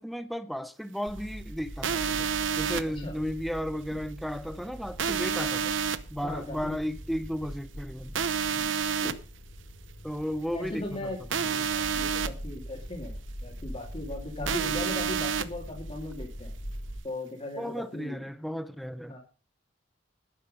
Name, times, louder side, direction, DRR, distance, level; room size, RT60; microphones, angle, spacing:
voice 1, 0.0-2.3 2.6-5.8 6.1-8.2 10.0-11.7 14.4-14.8 17.6-19.1, equal, ahead, 0.8 m, -34 dB
sound 1, 1.1-17.0, equal, 85° left, 6.5 m, -42 dB
sound 2, 1.8-2.8 5.0-6.0 8.1-9.1 11.3-12.3 14.5-15.4, right 7 dB, 85° right, 0.8 m, -28 dB
voice 2, 6.2-6.7 8.5-9.1 10.5-11.2 11.4-13.2 13.4-16.5 17.0-18.3 19.1-19.2, left 1 dB, 35° left, 2.7 m, -38 dB
12.0 x 10.0 x 5.3 m
head